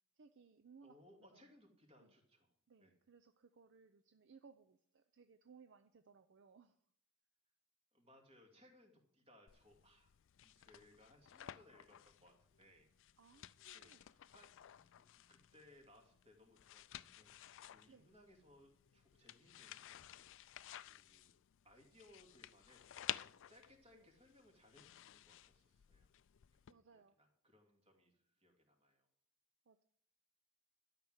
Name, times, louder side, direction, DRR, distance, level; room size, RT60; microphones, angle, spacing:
voice 1, 0.1-1.0 1.3-1.5 2.0-2.1 2.7-6.8 13.2-14.0 17.9-18.1 23.9-24.1 26.7-27.2 29.7-29.8, right 5 dB, 55° right, 10 dB, 0.6 m, -64 dB
voice 2, 0.8-2.9 7.9-10.2 10.4-12.9 13.7-14.6 15.0-20.3 20.8-21.3 21.6-23.1 23.5-26.1 26.7-29.1, left 1 dB, 25° right, 2 dB, 2.6 m, -67 dB
sound 1, 9.5-26.7, left 12 dB, 60° left, 0.4 m, -54 dB
12.5 x 5.9 x 7.9 m, 0.64 s
head